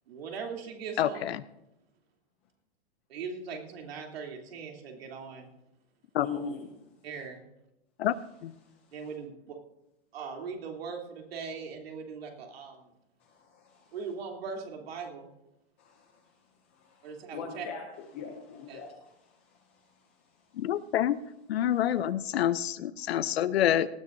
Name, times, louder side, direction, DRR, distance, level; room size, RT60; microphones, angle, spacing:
voice 1, 0.1-1.4 3.1-5.5 6.3-6.4 7.0-7.4 8.9-9.6 10.1-12.9 13.9-15.3 17.0-17.7 18.7-18.8, right 5 dB, 65° right, 1 dB, 3.1 m, -40 dB
voice 2, 1.0-1.4 6.1-6.3 8.0-8.2 8.4-8.5 20.6-21.2 21.5-23.9, left 11 dB, 65° left, 15 dB, 0.7 m, -27 dB
voice 3, 6.2-6.7 8.6-8.9 13.2-13.9 15.8-20.7 21.8-21.9, left 5 dB, 10° left, 2 dB, 0.4 m, -43 dB
18.5 x 13.5 x 2.6 m, 0.88 s
supercardioid pair, 175°, 33 cm